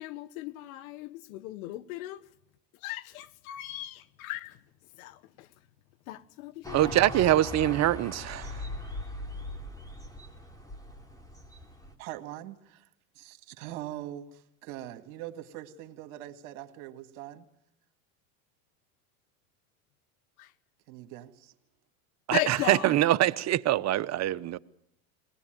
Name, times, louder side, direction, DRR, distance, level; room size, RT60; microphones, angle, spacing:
voice 1, 0.0-2.2 2.8-4.6 5.0-5.5 6.1-6.9 20.4-20.5 22.3-23.0, left 16 dB, 75° left, 1.2 m, -37 dB
sound 1, 6.6-11.9, left 1 dB, 10° left, 3.4 m, -40 dB
voice 2, 6.7-8.6 22.3-24.6, right 13 dB, 40° right, 0.9 m, -24 dB
voice 3, 12.0-12.9 13.2-17.5 20.9-21.5, right 13 dB, 70° right, 2.1 m, -42 dB
22.0 x 19.0 x 9.1 m
supercardioid pair, 105°, 43 cm